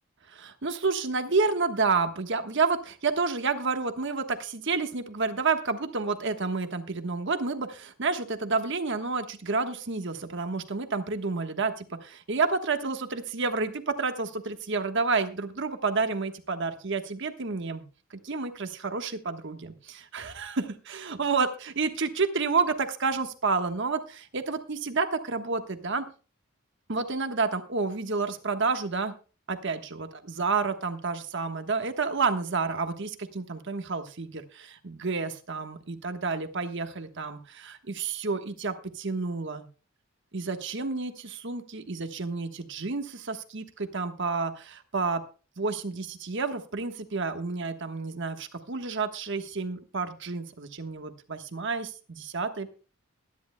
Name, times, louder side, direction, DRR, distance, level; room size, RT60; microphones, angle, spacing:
voice 1, 0.3-17.8 18.2-26.0 26.9-29.1 29.5-39.7 40.3-45.2 45.6-52.7, right 4 dB, 55° right, 7 dB, 1.3 m, -30 dB
21.5 x 10.5 x 2.2 m, 0.35 s
head